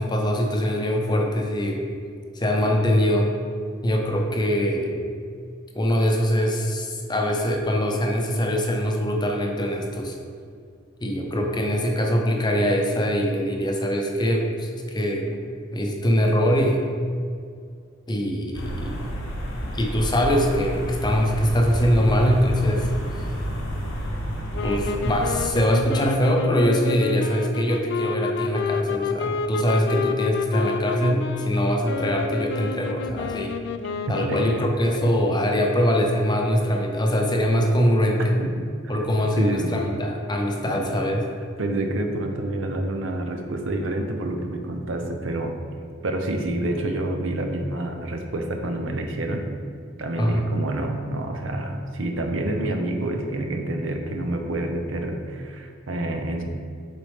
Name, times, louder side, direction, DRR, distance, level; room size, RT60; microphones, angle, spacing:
voice 1, 0.0-1.8 2.3-3.3 3.8-5.0 5.7-10.1 11.0-15.4 15.7-16.8 18.1-19.1 19.7-22.9 24.6-33.5 34.1-38.2 38.9-41.2 50.2-50.4, equal, 20° left, 1 dB, 0.7 m, -23 dB
sound 1, 18.5-25.6, equal, 80° left, 1.1 m, -30 dB
sound 2, 24.5-34.9, left 4 dB, 60° left, 0.3 m, -29 dB
voice 2, 34.1-34.4 38.2-39.1 39.3-39.9 40.6-40.9 41.6-45.6 46.0-49.5 50.0-56.4, right 1 dB, 70° right, 4 dB, 0.7 m, -28 dB
8.0 x 4.2 x 3.5 m, 2.2 s
head